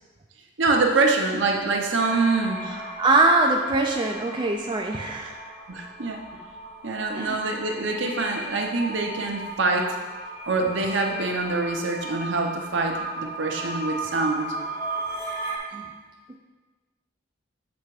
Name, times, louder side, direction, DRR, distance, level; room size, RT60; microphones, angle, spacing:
voice 1, 0.6-2.6 5.7-6.2 6.8-10.0 10.5-14.5, right 3 dB, 65° right, 2 dB, 0.8 m, -25 dB
sound 1, 2.0-15.6, right 2 dB, 35° left, 1.2 m, -36 dB
voice 2, 3.0-5.4 7.1-7.4 15.7-15.9, right 2 dB, 25° right, 1 dB, 0.3 m, -22 dB
7.2 x 3.4 x 4.7 m, 1.3 s
head